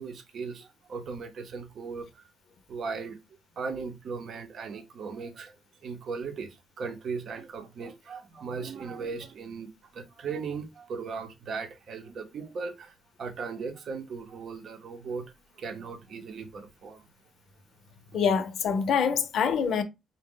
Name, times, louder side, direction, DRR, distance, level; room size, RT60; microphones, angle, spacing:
voice 1, 0.0-2.2 2.7-3.2 3.6-5.5 5.8-15.3 15.6-17.0 19.6-19.8, right 5 dB, 60° right, 0.7 m, -38 dB
voice 2, 18.1-19.8, left 6 dB, 65° left, 0.6 m, -25 dB
3.9 x 2.1 x 3.6 m
cardioid pair, 90°, 0 cm